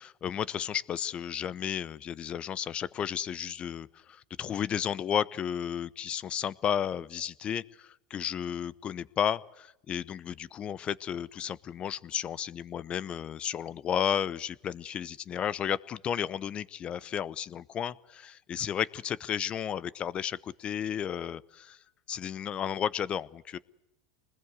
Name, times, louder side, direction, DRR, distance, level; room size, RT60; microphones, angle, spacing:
voice 1, 0.0-21.8 22.1-23.6, left 9 dB, 35° left, 20 dB, 0.8 m, -33 dB
25.0 x 20.0 x 8.2 m, 0.89 s
hypercardioid pair, 100°, 3 cm